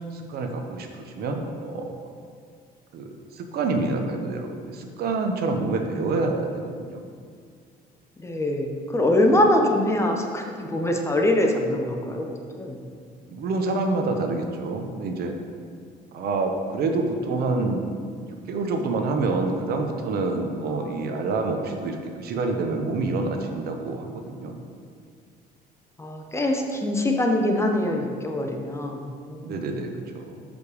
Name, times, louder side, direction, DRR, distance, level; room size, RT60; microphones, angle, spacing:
voice 1, 0.1-1.9 2.9-7.0 13.3-15.3 16.1-24.6 29.4-30.4, right 3 dB, 65° right, 4 dB, 0.9 m, -27 dB
voice 2, 8.2-12.8 20.7-21.3 26.0-29.6, left 1 dB, 15° left, 2 dB, 0.8 m, -24 dB
6.6 x 5.2 x 4.9 m, 2.1 s
cardioid pair, 110°, 17 cm